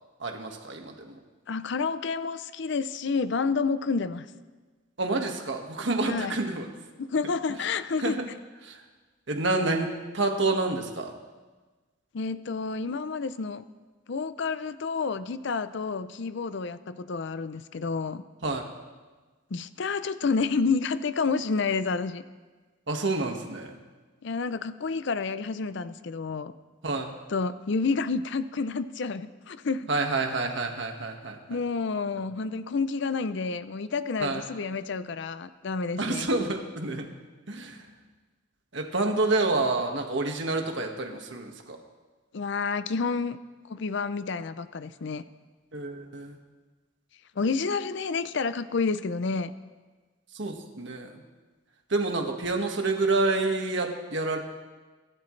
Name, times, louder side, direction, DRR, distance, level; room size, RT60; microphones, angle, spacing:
voice 1, 0.2-1.2 5.0-6.7 8.0-8.3 8.6-8.8 9.3-9.9 10.1-11.1 18.4-18.6 22.9-23.8 26.8-27.1 29.9-31.6 34.2-34.4 36.0-37.1 37.5-37.8 38.7-41.8 45.7-46.4 50.3-51.1 51.9-54.4, right 2 dB, 60° right, 3 dB, 1.7 m, -28 dB
voice 2, 1.5-4.3 6.0-6.4 7.0-8.2 12.1-13.6 14.1-18.2 19.5-22.2 24.2-26.5 27.3-29.9 31.5-36.3 42.3-43.4 43.7-45.2 47.4-49.5, left 4 dB, 60° left, 13 dB, 0.5 m, -29 dB
25.5 x 12.5 x 3.3 m, 1.3 s
head